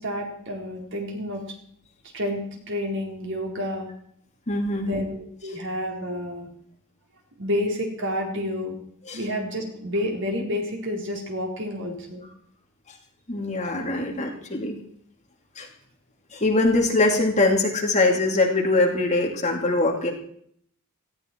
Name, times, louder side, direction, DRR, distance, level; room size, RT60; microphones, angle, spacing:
voice 1, 0.0-1.4 2.1-3.9 4.8-6.5 7.4-8.7 9.1-12.2, left 1 dB, 55° right, 1 dB, 4.2 m, -29 dB
voice 2, 4.5-5.0 9.1-9.2 13.3-14.8 15.6-15.7 16.3-20.1, left 2 dB, 35° left, 1 dB, 2.7 m, -22 dB
18.0 x 15.0 x 4.6 m, 0.64 s
head